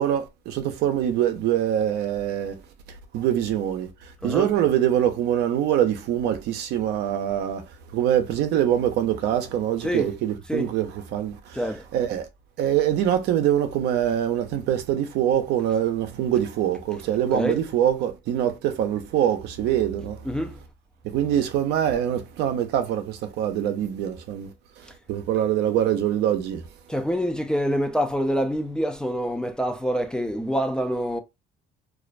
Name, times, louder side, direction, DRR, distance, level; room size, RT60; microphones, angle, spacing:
voice 1, 0.0-2.6 3.1-3.9 4.2-7.6 7.9-11.6 11.9-12.3 12.6-20.2 21.1-24.5 25.1-26.6, right 10 dB, 85° right, 0.5 m, -24 dB
voice 2, 9.8-10.1 10.5-10.7 11.5-11.8 17.3-17.6 20.2-20.6 26.9-31.2, equal, 5° left, 0.3 m, -26 dB
2.4 x 2.1 x 2.4 m
cardioid pair, 110°, 17 cm